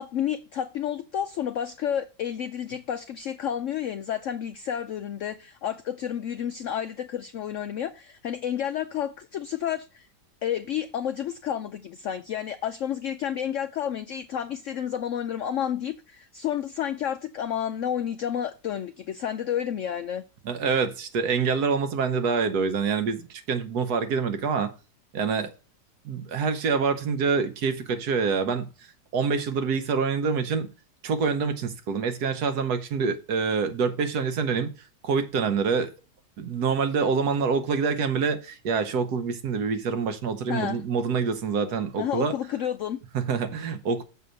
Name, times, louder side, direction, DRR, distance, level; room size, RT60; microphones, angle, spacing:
voice 1, 0.0-10.1 10.4-20.2 40.5-40.8 42.0-43.0, left 9 dB, 75° left, 0.7 m, -30 dB
voice 2, 20.4-24.7 25.1-25.5 26.0-28.7 29.1-30.7 31.0-34.7 35.0-35.9 36.4-42.3 43.1-44.0, right 5 dB, 65° right, 1.4 m, -26 dB
6.9 x 5.7 x 6.4 m
omnidirectional pair, 1.9 m